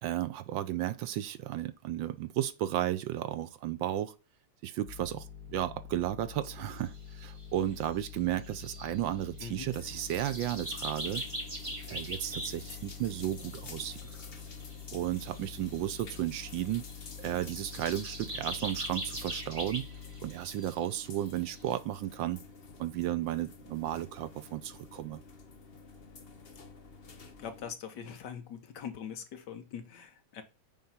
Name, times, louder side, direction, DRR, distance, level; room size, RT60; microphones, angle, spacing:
voice 1, 0.0-4.1 4.6-11.2 11.9-14.0 14.9-16.8 17.2-19.8 20.2-22.4 22.8-25.2, right 12 dB, 75° right, 1.3 m, -34 dB
sound 1, 4.8-20.3, left 8 dB, 50° right, 2.1 m, -47 dB
sound 2, 6.7-7.4 7.7-7.8 8.1-8.2 8.4-9.3 9.7-13.5 14.0-16.0 16.3-20.9 21.2-21.3 21.5-21.7, right 1 dB, 15° right, 1.5 m, -42 dB
sound 3, 9.7-27.7, left 4 dB, 40° left, 0.9 m, -50 dB
voice 2, 27.4-30.4, left 7 dB, 60° left, 1.4 m, -42 dB
9.0 x 3.9 x 5.6 m
omnidirectional pair, 2.3 m